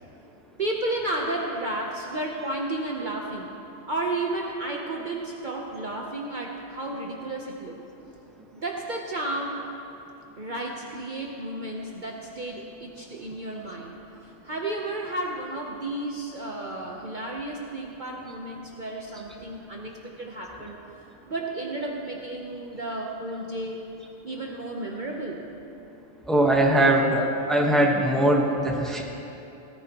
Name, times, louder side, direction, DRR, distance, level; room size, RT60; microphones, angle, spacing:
voice 1, 0.6-3.5 3.8-7.7 8.5-9.7 10.4-20.8 21.3-23.8 24.2-25.5, right 2 dB, 45° right, -1 dB, 0.9 m, -32 dB
voice 2, 26.3-29.0, right 1 dB, ahead, -1 dB, 1.1 m, -21 dB
17.5 x 14.0 x 3.0 m, 3.0 s
omnidirectional pair, 1.3 m